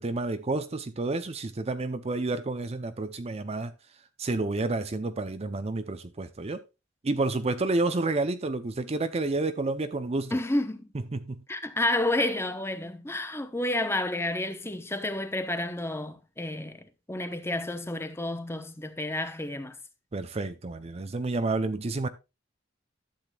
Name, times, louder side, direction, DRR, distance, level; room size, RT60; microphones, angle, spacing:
voice 1, 0.0-3.7 4.2-6.6 7.0-10.4 11.1-11.4 20.1-22.1, right 2 dB, 30° right, 0.6 m, -30 dB
voice 2, 10.3-10.9 11.5-19.8, left 1 dB, 15° left, 0.9 m, -30 dB
12.0 x 7.9 x 2.3 m
head